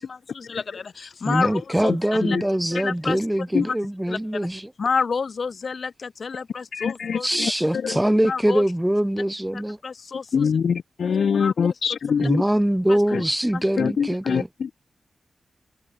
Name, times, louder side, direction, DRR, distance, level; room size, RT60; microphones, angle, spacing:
voice 1, 0.1-2.4 2.7-3.2 3.6-3.8 4.1-4.5 4.8-7.3 8.3-8.6 9.5-10.5 11.4-11.5 12.9-13.0 13.5-13.6, left 5 dB, 50° left, 2.2 m, -29 dB
voice 2, 1.3-4.7 7.2-9.8 12.2-14.5, right 1 dB, 5° right, 1.0 m, -23 dB
voice 3, 6.7-8.0 10.3-12.4 13.1-13.2 13.8-14.7, left 6 dB, 75° left, 3.6 m, -24 dB
wide cardioid pair, 130°, 0 cm